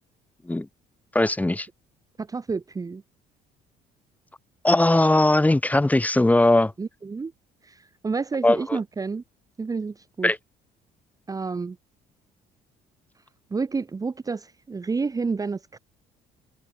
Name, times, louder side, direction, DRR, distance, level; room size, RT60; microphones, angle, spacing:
voice 1, 1.2-1.7 4.6-6.7 8.4-8.8 10.2-10.4, left 1 dB, 10° left, 1.8 m, -19 dB
voice 2, 2.2-3.0 6.8-7.3 7.6-9.2 9.6-10.4 11.3-11.8 13.5-15.8, right 4 dB, 20° right, 1.0 m, -30 dB
cardioid pair, 110°, 17 cm